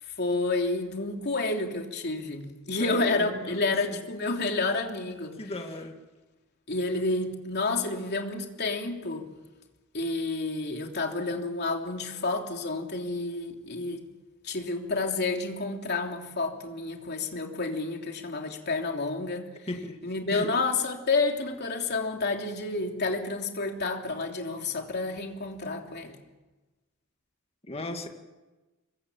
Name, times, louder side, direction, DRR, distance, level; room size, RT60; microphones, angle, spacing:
voice 1, 0.0-5.5 6.7-9.3 9.9-14.1 14.4-19.5 20.0-26.2, left 3 dB, 55° left, 2 dB, 3.2 m, -30 dB
voice 2, 2.8-3.7 5.4-6.0 19.7-20.0 20.3-20.5 27.7-28.1, left 1 dB, 30° left, 4 dB, 2.2 m, -36 dB
26.0 x 22.5 x 7.4 m, 1.2 s
head